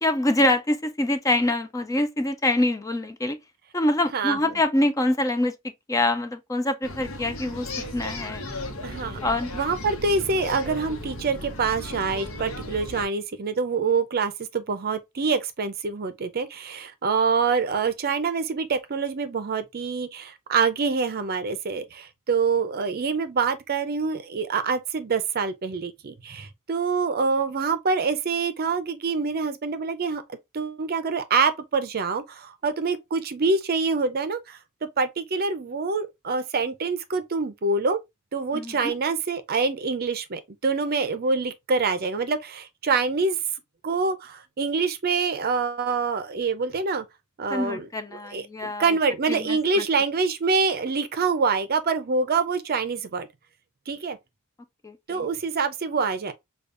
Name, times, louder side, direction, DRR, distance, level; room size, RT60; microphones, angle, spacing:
voice 1, 0.0-3.4 3.7-5.5 5.9-7.7 7.9-8.4 9.2-9.5 38.5-38.9 47.5-48.9 49.3-49.8 54.8-55.3, left 1 dB, 15° left, 0.4 m, -25 dB
voice 2, 4.1-4.5 8.8-9.2 9.5-34.6 35.0-38.0 38.3-43.4 43.8-47.1 47.4-53.3 53.9-54.2 55.1-56.3, right 4 dB, 45° right, 0.5 m, -26 dB
sound 1, 6.8-13.1, left 1 dB, 70° left, 0.9 m, -35 dB
5.1 x 2.3 x 2.4 m
head